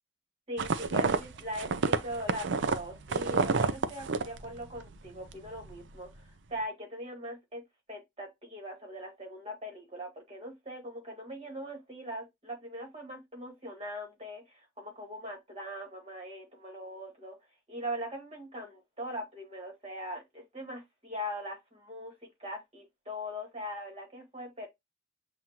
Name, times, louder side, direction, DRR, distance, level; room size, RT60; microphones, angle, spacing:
voice 1, 0.5-7.6 7.9-17.4 17.7-22.1 22.4-24.7, equal, 30° right, 1.8 m, -41 dB
sound 1, 0.6-4.9 5.2-5.7, right 4 dB, 70° right, 0.5 m, -29 dB
7.3 x 2.5 x 2.8 m
head